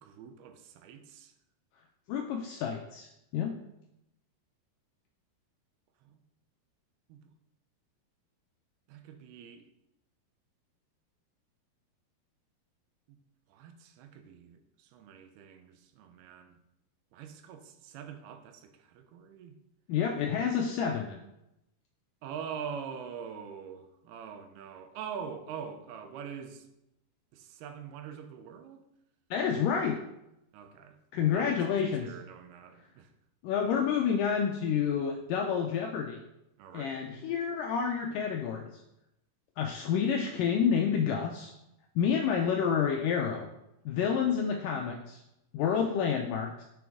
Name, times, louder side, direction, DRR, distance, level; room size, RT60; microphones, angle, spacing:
voice 1, 0.0-1.3 6.0-6.2 7.1-7.2 8.9-9.6 13.1-13.2 13.5-16.6 17.1-19.6 22.2-26.6 27.3-28.8 30.5-31.0 31.3-33.1 36.6-37.0, right 7 dB, 85° right, 7 dB, 2.7 m, -44 dB
voice 2, 2.1-3.1 3.3-3.5 19.9-21.2 29.3-30.0 31.1-32.1 33.4-36.2 36.7-38.8 39.6-41.5 42.0-43.5 43.9-45.2 45.5-46.6, left 7 dB, 90° left, 3 dB, 1.9 m, -29 dB
7.0 x 6.0 x 3.6 m, 0.85 s
omnidirectional pair, 4.4 m